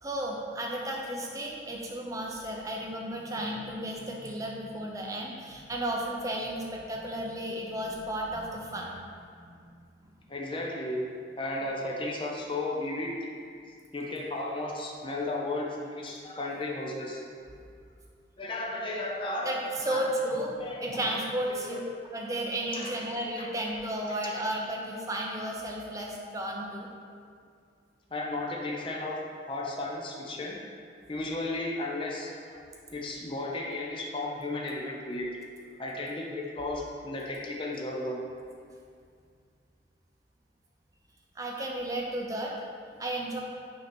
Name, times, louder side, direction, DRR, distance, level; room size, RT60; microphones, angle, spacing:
voice 1, 0.0-9.1 9.4-9.6 19.4-20.5 20.8-21.8 22.1-26.9 41.4-42.5 43.0-43.4, right 1 dB, 20° right, -1 dB, 0.7 m, -33 dB
voice 2, 10.3-11.1 11.4-13.1 13.9-17.2 18.4-19.5 19.8-20.1 20.6-21.1 21.6-21.8 22.7-23.0 23.4-23.5 24.2-24.3 28.1-29.2 29.5-30.6 31.1-32.6 32.9-35.3 35.8-38.2, left 2 dB, 30° left, -2 dB, 0.6 m, -34 dB
6.4 x 2.9 x 5.2 m, 2.3 s
head